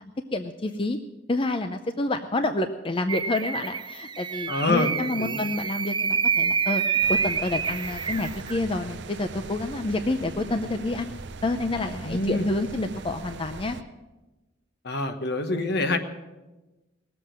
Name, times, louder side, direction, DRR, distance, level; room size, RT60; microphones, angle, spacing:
voice 1, 0.3-1.0 1.3-11.1 11.4-13.8, left 2 dB, 30° left, 8 dB, 0.5 m, -28 dB
sound 1, 3.1-8.6, right 6 dB, 25° right, 0.5 m, -27 dB
voice 2, 4.5-5.5 12.0-12.5 14.8-16.0, left 2 dB, 60° left, 7 dB, 1.3 m, -26 dB
sound 2, 7.0-13.8, right 3 dB, 65° right, 0.7 m, -40 dB
19.0 x 7.7 x 7.6 m, 1.1 s
head